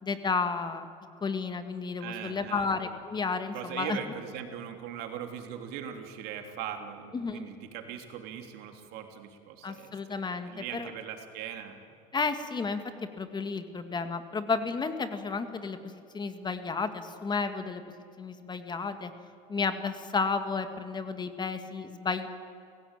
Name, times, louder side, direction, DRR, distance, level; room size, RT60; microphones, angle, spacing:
voice 1, 0.0-0.9 1.2-4.0 7.1-7.5 9.6-10.9 12.1-12.8 13.2-19.1 19.5-22.3, left 4 dB, 25° left, 8 dB, 2.1 m, -32 dB
voice 2, 2.0-2.7 3.5-10.2 10.4-11.8, right 9 dB, 70° right, 5 dB, 3.1 m, -40 dB
29.0 x 16.5 x 9.1 m, 2.4 s
supercardioid pair, 105°, 17 cm